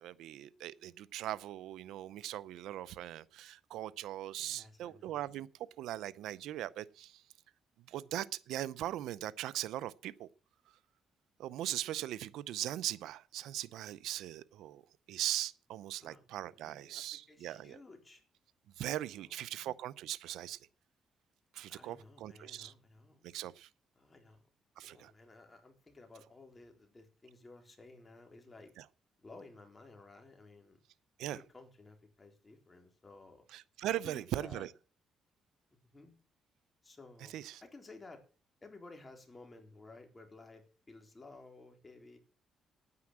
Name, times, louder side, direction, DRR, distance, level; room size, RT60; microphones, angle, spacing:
voice 1, 0.0-5.5 5.8-7.2 7.9-10.3 11.4-14.8 15.1-17.8 18.8-20.6 21.5-22.7 23.2-23.7 24.8-25.1 28.8-28.9 31.2-31.4 33.5-34.7 37.3-37.6, right 13 dB, 85° right, 18 dB, 0.6 m, -40 dB
voice 2, 4.4-5.2 16.0-16.3 16.5-18.2 19.1-19.7 21.7-23.2 24.0-24.4 24.8-28.7 29.2-30.8 31.2-33.4 33.9-34.7 35.7-36.2 36.8-37.3 37.6-38.2 38.6-42.2, left 3 dB, 25° left, 4 dB, 3.8 m, -55 dB
9.7 x 9.6 x 7.4 m, 0.38 s
cardioid pair, 90°, 0 cm